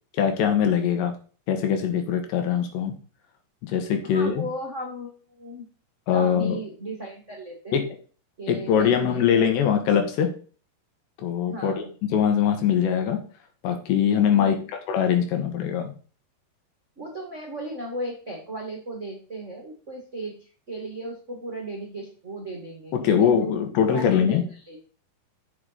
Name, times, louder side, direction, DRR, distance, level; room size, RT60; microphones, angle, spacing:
voice 1, 0.2-1.1 1.5-2.9 3.6-4.5 6.1-6.6 7.7-7.8 8.5-10.3 11.2-11.8 12.1-13.2 13.6-14.6 14.9-15.9 22.9-24.4, left 8 dB, 80° left, 5 dB, 3.8 m, -22 dB
voice 2, 4.0-5.7 6.1-7.8 8.4-9.3 11.4-11.9 14.3-14.6 17.0-20.3 20.7-24.4 24.7-24.9, right 1 dB, 40° right, 1 dB, 0.9 m, -36 dB
8.1 x 7.1 x 4.1 m, 0.39 s
omnidirectional pair, 4.9 m